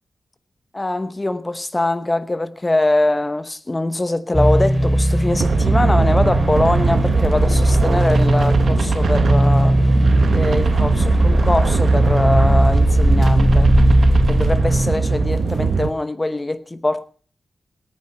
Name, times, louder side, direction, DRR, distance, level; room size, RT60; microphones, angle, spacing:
voice 1, 0.7-10.0 10.3-13.7 14.3-17.1, left 2 dB, 20° left, 0.9 m, -22 dB
sound 1, 4.3-15.9, equal, ahead, 3.1 m, -17 dB
sound 2, 5.3-15.9, right 5 dB, 70° right, 1.1 m, -21 dB
17.5 x 9.5 x 5.5 m
wide cardioid pair, 135°, 0 cm